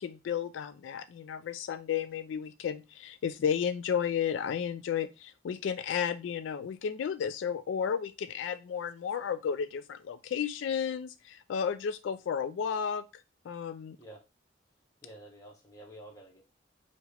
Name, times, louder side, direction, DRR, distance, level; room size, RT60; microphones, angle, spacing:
voice 1, 0.0-13.1 13.5-14.0, left 7 dB, 85° left, 13 dB, 0.3 m, -33 dB
voice 2, 15.0-16.4, right 1 dB, 20° left, 0 dB, 1.2 m, -50 dB
4.7 x 2.9 x 3.2 m, 0.27 s
head